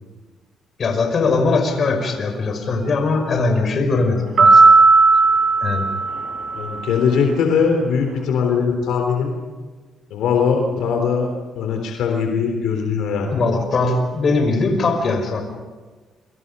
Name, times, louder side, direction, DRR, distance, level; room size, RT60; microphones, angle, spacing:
voice 1, 0.8-4.7 5.6-5.8 13.3-15.4, left 3 dB, 50° left, 5 dB, 5.5 m, -20 dB
sound 1, 4.4-6.9, right 3 dB, 50° right, 5.3 m, -14 dB
voice 2, 6.5-9.3 10.1-13.4, left 6 dB, 85° left, 3 dB, 3.6 m, -20 dB
29.0 x 24.5 x 5.6 m, 1.4 s
cardioid pair, 90°, 0 cm